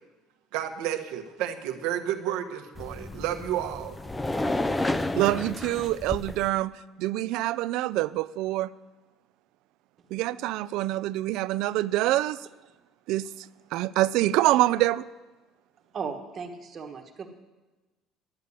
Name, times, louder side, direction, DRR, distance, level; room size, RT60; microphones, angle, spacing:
voice 1, 0.5-4.0, right 11 dB, 80° right, 6 dB, 1.2 m, -31 dB
sound 1, 2.8-6.5, left 2 dB, 10° left, 0.4 m, -31 dB
voice 2, 5.2-6.7 7.0-8.7 10.1-12.4 13.1-13.3 13.7-15.0, right 16 dB, 60° right, 17 dB, 0.4 m, -25 dB
voice 3, 15.9-17.3, right 5 dB, 30° right, 4 dB, 1.2 m, -36 dB
11.0 x 8.4 x 9.7 m, 1.2 s
cardioid pair, 180°, 0 cm